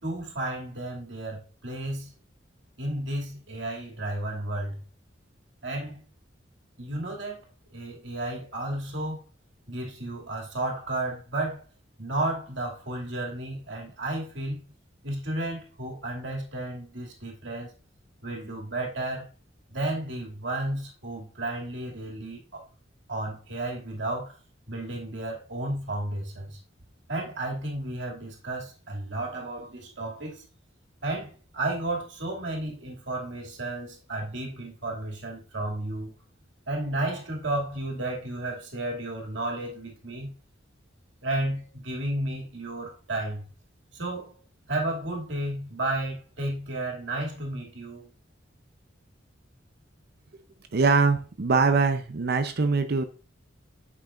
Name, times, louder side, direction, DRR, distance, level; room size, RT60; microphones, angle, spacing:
voice 1, 0.0-2.1 2.8-4.8 5.6-6.0 6.8-7.4 7.7-9.2 9.7-11.6 12.0-14.6 15.0-17.7 18.2-19.3 19.7-22.6 23.1-24.4 24.7-26.6 27.1-30.4 31.0-36.1 36.7-40.4 41.2-43.4 43.9-44.4 44.7-48.1, right 1 dB, 70° right, 2.4 m, -32 dB
voice 2, 50.7-53.0, right 4 dB, 55° right, 0.6 m, -23 dB
8.7 x 5.9 x 2.4 m
head